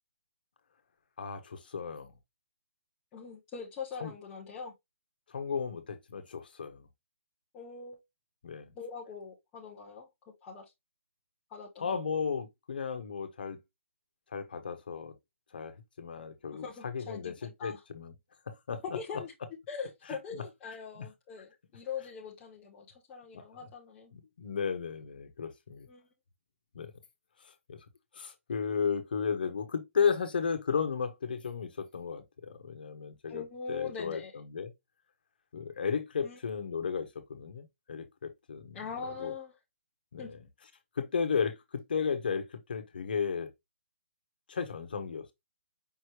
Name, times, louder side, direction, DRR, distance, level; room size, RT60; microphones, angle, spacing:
voice 1, 1.2-2.1 4.0-4.1 5.3-6.9 8.4-8.7 11.8-13.6 14.3-15.1 15.5-18.1 18.5-18.8 20.4-20.5 21.0-21.1 23.3-23.4 24.1-25.9 26.7-26.9 27.4-27.8 28.1-33.4 33.7-34.7 35.5-39.3 40.1-40.4 40.9-43.5 44.5-45.3, left 6 dB, 45° left, 1.0 m, -34 dB
voice 2, 3.1-4.7 7.5-8.0 8.7-10.1 10.4-10.7 11.5-11.9 16.5-17.8 18.9-19.3 19.7-24.1 25.9-26.1 33.3-34.3 36.2-36.4 38.7-39.5 40.2-40.3, left 6 dB, 10° left, 0.4 m, -42 dB
5.4 x 3.1 x 3.0 m
hypercardioid pair, 180°, 7 cm